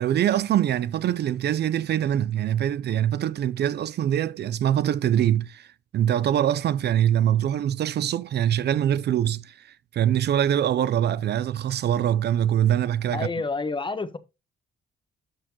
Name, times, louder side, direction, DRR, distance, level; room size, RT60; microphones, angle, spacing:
voice 1, 0.0-5.7 5.9-13.3, right 10 dB, 55° right, 0.5 m, -23 dB
voice 2, 13.1-14.2, left 3 dB, 25° left, 1.1 m, -29 dB
12.5 x 4.3 x 2.9 m
cardioid pair, 90°, 20 cm